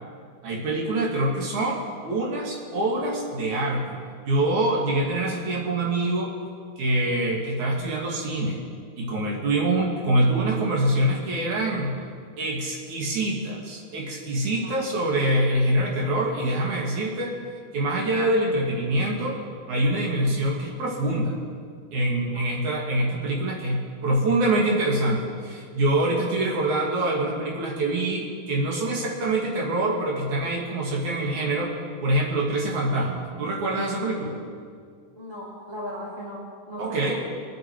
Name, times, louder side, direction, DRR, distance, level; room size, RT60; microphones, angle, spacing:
voice 1, 0.4-4.0 4.2-6.3 6.8-8.6 9.0-12.0 12.4-17.3 17.7-19.4 19.7-21.4 21.9-31.8 32.0-34.4 36.8-37.2, right 1 dB, 55° right, -2 dB, 3.2 m, -25 dB
voice 2, 35.1-37.2, equal, 10° left, -4 dB, 1.5 m, -37 dB
22.5 x 9.4 x 4.6 m, 2.1 s
omnidirectional pair, 4.2 m